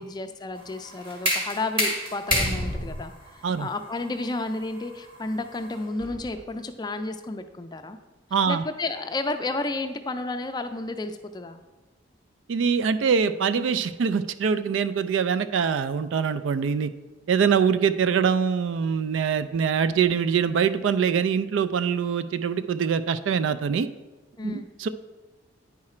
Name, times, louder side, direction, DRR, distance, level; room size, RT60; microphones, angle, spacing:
voice 1, 0.0-8.0 8.5-11.6 24.4-24.7, left 2 dB, 20° left, 7 dB, 0.4 m, -32 dB
sound 1, 0.6-6.3, equal, 30° right, 2.2 m, -30 dB
voice 2, 8.3-8.6 12.5-16.9 17.3-23.9 24.4-24.9, right 6 dB, 80° right, 13 dB, 0.3 m, -24 dB
9.6 x 4.8 x 4.3 m, 1.2 s
head